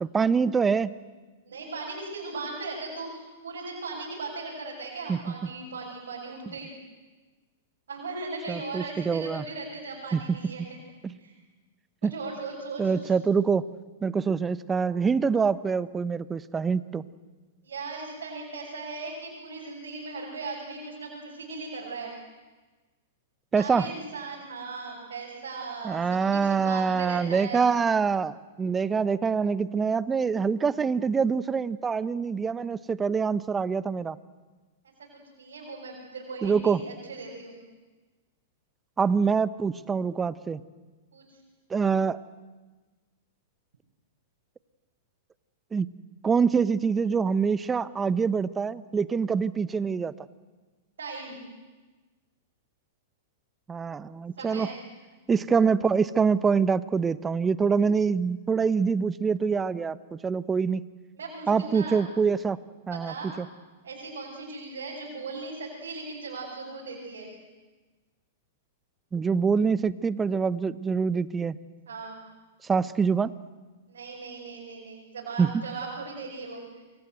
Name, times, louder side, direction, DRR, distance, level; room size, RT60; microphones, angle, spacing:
voice 1, 0.0-0.9 5.1-5.2 8.5-9.4 10.1-10.7 11.0-11.2 12.0-12.1 12.8-13.7 14.0-17.1 23.5-23.9 25.8-34.2 36.4-36.8 39.0-40.6 41.7-42.2 45.7-45.9 46.2-50.1 53.7-54.7 55.3-60.8 61.5-62.6 62.9-63.5 69.1-71.6 72.6-73.3 75.4-75.5, right 5 dB, 15° right, 17 dB, 0.9 m, -25 dB
voice 2, 1.5-6.7 7.9-10.6 11.2-11.3 12.0-13.1 17.6-22.1 23.5-27.7 35.3-37.6 41.1-41.2 51.0-51.4 54.4-54.8 61.2-62.0 62.9-63.3 63.8-67.3 71.9-72.2 73.9-76.8, right 3 dB, 75° right, -4 dB, 6.9 m, -38 dB
28.0 x 23.5 x 8.0 m, 1.3 s
hypercardioid pair, 105°, 0 cm